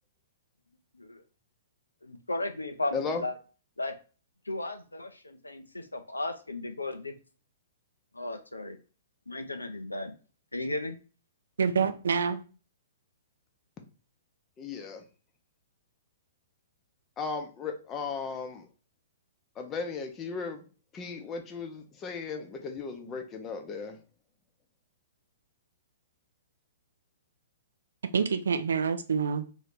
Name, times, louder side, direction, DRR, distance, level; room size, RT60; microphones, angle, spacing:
voice 1, 2.0-3.4 3.8-3.9 4.5-7.1 8.1-8.8 9.3-10.1 10.5-11.0, left 2 dB, 85° left, 7 dB, 0.5 m, -35 dB
voice 2, 2.9-3.2 14.6-15.0 17.2-18.7 19.6-20.6 20.9-24.0, left 5 dB, 25° left, 4 dB, 0.6 m, -36 dB
voice 3, 11.6-12.4 28.0-29.5, right 6 dB, 70° right, 9 dB, 0.4 m, -27 dB
2.8 x 2.7 x 3.4 m, 0.35 s
figure-of-eight pair, 115°, 0 cm